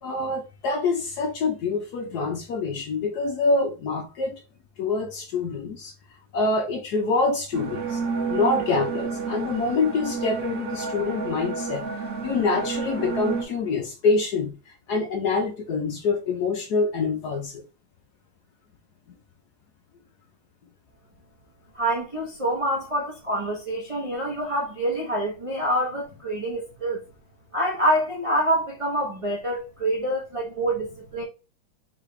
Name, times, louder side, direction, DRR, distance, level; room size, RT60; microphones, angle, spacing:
voice 1, 0.0-4.4 4.8-5.9 6.3-8.0 8.3-17.6, left 3 dB, 65° left, 1.1 m, -26 dB
sound 1, 7.5-13.4, right 5 dB, 60° right, 1.0 m, -30 dB
voice 2, 21.7-27.0 27.5-31.2, right 1 dB, 40° right, 0.5 m, -26 dB
3.8 x 3.3 x 3.2 m
omnidirectional pair, 2.3 m